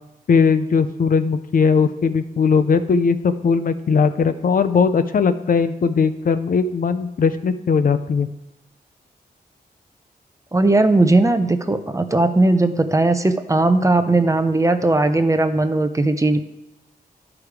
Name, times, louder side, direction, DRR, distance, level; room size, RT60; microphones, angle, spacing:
voice 1, 0.3-8.3, left 5 dB, 60° left, 10 dB, 0.5 m, -19 dB
voice 2, 10.5-16.4, right 2 dB, 20° right, 8 dB, 0.6 m, -18 dB
11.5 x 4.9 x 4.8 m, 0.91 s
wide cardioid pair, 120°, 16 cm